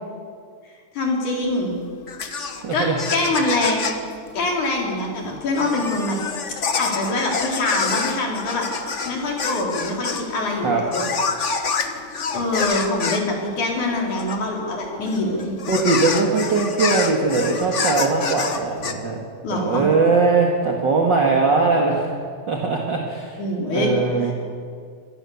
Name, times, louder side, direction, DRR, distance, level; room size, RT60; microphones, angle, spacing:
voice 1, 0.9-1.8 2.7-3.8 4.3-6.2 6.8-11.1 12.3-15.6 19.4-19.9 23.4-23.9 24.2-24.3, left 2 dB, 90° left, -1 dB, 5.4 m, -24 dB
sound 1, 1.4-18.9, left 5 dB, 65° left, 0.7 m, -28 dB
voice 2, 2.6-3.0 10.6-10.8 15.7-19.2 19.5-22.1 22.5-23.4 23.7-24.3, right 4 dB, 40° right, 0 dB, 2.4 m, -20 dB
25.0 x 18.0 x 7.2 m, 2.1 s
omnidirectional pair, 3.3 m